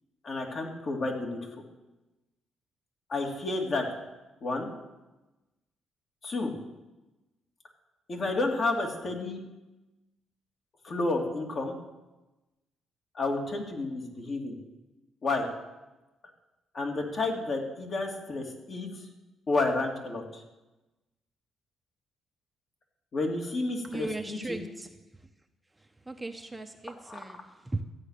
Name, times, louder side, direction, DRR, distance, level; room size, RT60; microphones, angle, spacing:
voice 1, 0.2-1.4 3.1-3.8 4.4-4.7 6.2-6.5 8.1-9.4 10.8-11.8 13.1-14.6 15.2-15.5 16.7-18.9 19.5-20.4 23.1-24.7 27.1-27.2, left 2 dB, 45° left, 1 dB, 2.9 m, -30 dB
voice 2, 23.8-25.0 25.8-27.8, right 2 dB, 15° right, 6 dB, 0.9 m, -38 dB
14.0 x 8.9 x 6.7 m, 1.1 s
cardioid pair, 90°, 0 cm